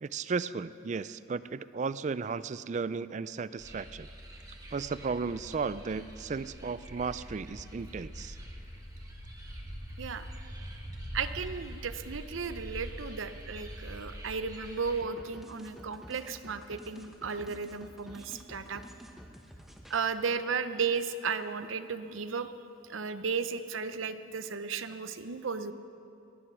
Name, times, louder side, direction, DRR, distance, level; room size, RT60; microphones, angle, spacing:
voice 1, 0.0-4.1 4.7-8.4, right 5 dB, 35° right, 16 dB, 0.3 m, -35 dB
sound 1, 3.6-15.0, equal, 20° right, 1.4 m, -45 dB
Walk footsteps, 5.2-12.9, equal, 75° left, 1.7 m, -48 dB
voice 2, 11.1-18.8 19.9-22.5 22.8-25.7, right 5 dB, 85° right, 11 dB, 0.7 m, -34 dB
sound 2, 15.0-20.1, equal, ahead, 0.9 m, -50 dB
18.0 x 11.0 x 6.1 m, 2.6 s
head